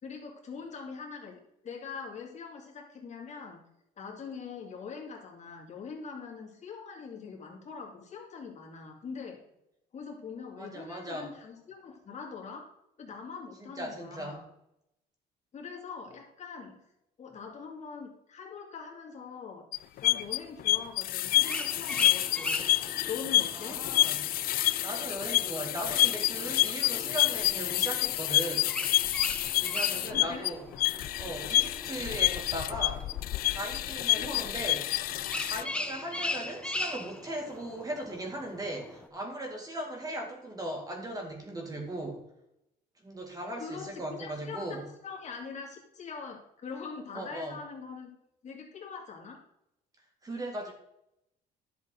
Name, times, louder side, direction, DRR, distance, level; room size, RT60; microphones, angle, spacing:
voice 1, 0.0-3.6 4.0-9.4 9.9-12.6 13.0-14.4 15.5-16.8 17.2-19.6 20.0-22.7 23.1-23.8 29.9-30.5 34.1-34.5 43.6-48.2 48.4-49.4, left 5 dB, 45° left, 0 dB, 2.5 m, -43 dB
voice 2, 10.6-11.3 13.6-14.4 23.5-24.3 24.8-28.8 29.6-30.6 31.2-33.1 33.5-34.8 35.4-42.2 43.0-44.9 47.1-47.6 50.2-50.7, right 1 dB, 20° right, 2 dB, 2.2 m, -38 dB
sound 1, 19.7-35.6, left 15 dB, 60° left, 0.4 m, -28 dB
sound 2, 21.3-39.1, left 2 dB, 5° left, 0.9 m, -40 dB
11.0 x 7.1 x 3.9 m, 0.81 s
cardioid pair, 110°, 17 cm